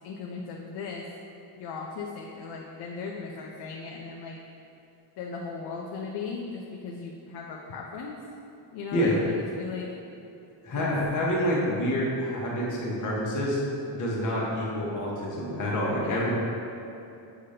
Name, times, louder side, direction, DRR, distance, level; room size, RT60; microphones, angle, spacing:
voice 1, 0.0-1.1 1.6-4.4 5.2-8.2 8.7-9.9 10.7-10.9 16.0-16.3, left 5 dB, 60° left, -2 dB, 0.6 m, -37 dB
voice 2, 10.6-13.6 13.9-16.3, equal, 40° left, -5 dB, 1.2 m, -27 dB
7.0 x 2.8 x 4.9 m, 2.8 s
cardioid pair, 170°, 44 cm